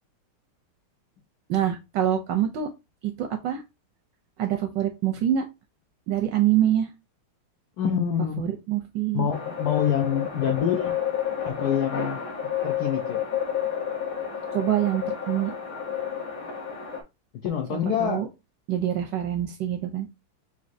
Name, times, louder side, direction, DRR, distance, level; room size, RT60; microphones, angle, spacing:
voice 1, 1.5-2.7 3.0-3.6 4.4-5.5 6.1-6.9 8.4-9.3 14.5-15.5 17.7-18.3 18.7-20.1, right 11 dB, 75° right, 1.1 m, -25 dB
voice 2, 7.8-8.4 9.1-11.0 11.4-12.2 12.6-13.2 17.4-18.2, left 8 dB, 75° left, 0.8 m, -26 dB
sound 1, 9.3-17.0, left 8 dB, 55° left, 1.1 m, -30 dB
6.1 x 2.6 x 2.6 m
omnidirectional pair, 2.4 m